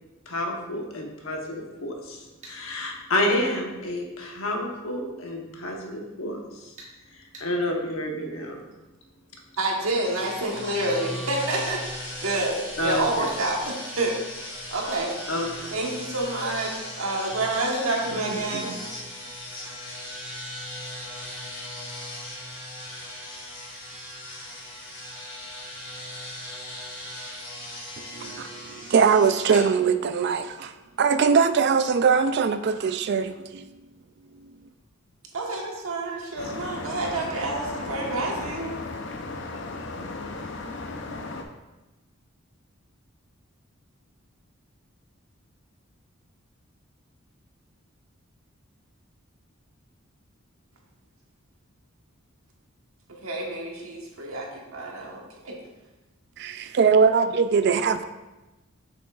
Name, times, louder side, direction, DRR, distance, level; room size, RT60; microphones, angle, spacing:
voice 1, 0.3-6.4 7.4-8.6 12.8-13.3 15.3-15.7 18.1-18.7, left 1 dB, 80° left, 1.0 m, -29 dB
sound 1, 2.4-2.6 6.8-7.0 7.3-7.5 10.9-11.4 13.3-13.4 14.9-15.1 17.7-17.9, right 2 dB, 35° right, 1.2 m, -44 dB
voice 2, 9.6-15.1 15.7-18.7 35.3-38.8 53.2-54.5 54.7-55.6, right 2 dB, 85° right, 1.3 m, -28 dB
sound 2, 10.0-29.6, left 1 dB, 25° left, 2.0 m, -38 dB
voice 3, 28.0-33.6 56.4-58.0, right 5 dB, 50° right, 0.3 m, -22 dB
sound 3, 36.4-41.4, left 3 dB, 55° left, 0.6 m, -35 dB
6.9 x 6.0 x 2.4 m
head